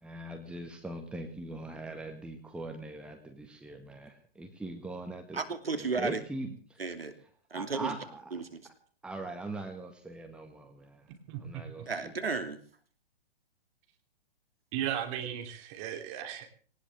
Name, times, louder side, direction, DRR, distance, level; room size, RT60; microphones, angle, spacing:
voice 1, 0.0-5.4 5.7-6.8 7.5-8.3 9.0-11.1 11.4-12.1, right 2 dB, 5° right, 4 dB, 1.8 m, -41 dB
voice 2, 5.3-6.2 6.8-7.1 7.5-7.9 8.3-8.6 11.9-12.6, right 4 dB, 70° right, 8 dB, 2.9 m, -33 dB
voice 3, 14.7-16.5, right 10 dB, 30° right, 5 dB, 3.2 m, -35 dB
20.5 x 19.0 x 3.5 m, 0.43 s
figure-of-eight pair, 120°, 31 cm